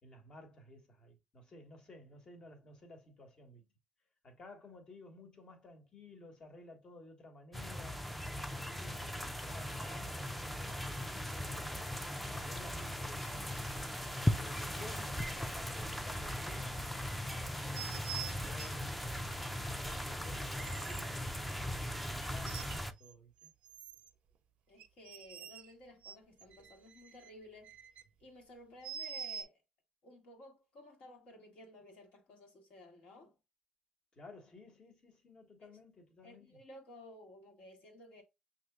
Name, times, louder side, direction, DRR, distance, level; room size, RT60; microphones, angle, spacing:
voice 1, 0.0-3.6 4.2-8.0 8.6-13.5 14.2-16.9 17.5-23.5 34.1-36.6, left 1 dB, 40° left, 1.3 m, -55 dB
sound 1, 7.5-22.9, left 1 dB, 5° left, 0.4 m, -38 dB
sound 2, 13.2-13.8 14.6-14.7 15.5-15.6 17.7-18.9 19.7-19.8 20.6-21.1 21.9-23.1 23.4-24.1 24.8-25.7 26.0-28.0 28.8-29.4, right 8 dB, 65° right, 0.4 m, -47 dB
voice 2, 24.7-27.7 28.2-29.6 30.0-33.3 35.6-35.7 36.2-38.2, left 1 dB, 70° left, 1.5 m, -55 dB
6.0 x 2.8 x 2.3 m
cardioid pair, 115°, 2 cm